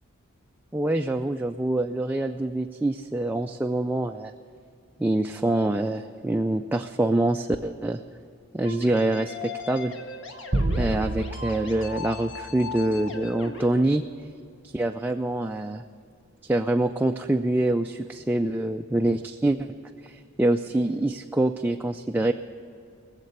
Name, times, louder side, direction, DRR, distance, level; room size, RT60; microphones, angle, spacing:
voice 1, 0.7-4.3 5.0-8.0 8.5-9.9 10.8-14.0 14.6-15.8 16.4-19.7 20.0-22.3, right 1 dB, 10° right, 4 dB, 0.3 m, -25 dB
sound 1, 8.6-13.7, left 3 dB, 60° left, 1.6 m, -37 dB
sound 2, 10.5-13.1, right 2 dB, 45° right, 0.7 m, -30 dB
20.5 x 7.4 x 8.1 m, 2.4 s
head